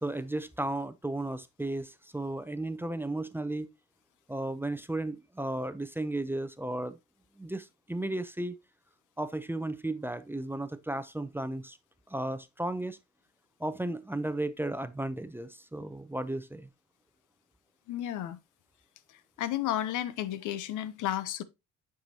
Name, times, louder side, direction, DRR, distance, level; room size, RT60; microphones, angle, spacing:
voice 1, 0.0-3.7 4.3-7.0 7.4-8.6 9.2-11.8 12.1-13.0 13.6-16.7, right 1 dB, 5° right, 0.5 m, -34 dB
voice 2, 17.9-18.4 19.1-21.4, left 12 dB, 85° left, 0.7 m, -33 dB
8.9 x 4.9 x 2.8 m
cardioid pair, 90°, 30 cm